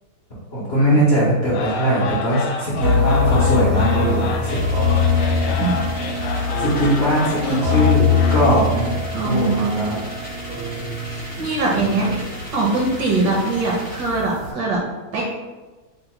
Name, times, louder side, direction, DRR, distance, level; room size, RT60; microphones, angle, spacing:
voice 1, 0.5-4.6 5.6-5.7 6.6-10.0, equal, 60° left, -8 dB, 0.6 m, -20 dB
sound 1, 1.5-8.6, left 5 dB, 80° left, 1.4 m, -29 dB
sound 2, 2.8-14.5, left 4 dB, 90° right, 1.9 m, -23 dB
sound 3, 4.4-14.2, equal, 10° left, 0.4 m, -38 dB
voice 2, 9.1-9.8 11.0-14.8 15.1-15.2, right 3 dB, 65° right, -3 dB, 1.1 m, -22 dB
3.9 x 2.1 x 4.3 m, 1.2 s
omnidirectional pair, 2.4 m